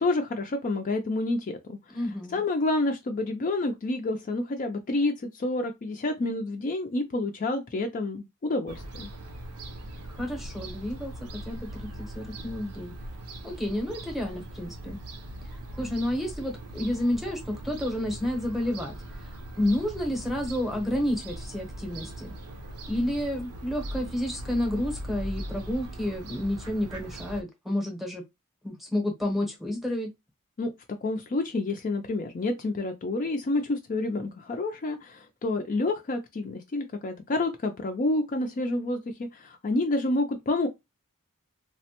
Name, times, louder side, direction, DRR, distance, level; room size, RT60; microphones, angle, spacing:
voice 1, 0.0-2.0 2.3-9.1 30.6-30.7 31.0-40.7, left 2 dB, 35° left, 0.4 m, -29 dB
voice 2, 1.9-2.4 10.2-12.9 13.4-15.0 15.8-19.0 19.6-22.3 22.9-28.2 28.6-30.1, left 1 dB, ahead, 0.8 m, -30 dB
Fowl / Gull seagull, 8.7-27.4, right 1 dB, 80° right, 0.6 m, -40 dB
3.4 x 2.1 x 2.8 m
head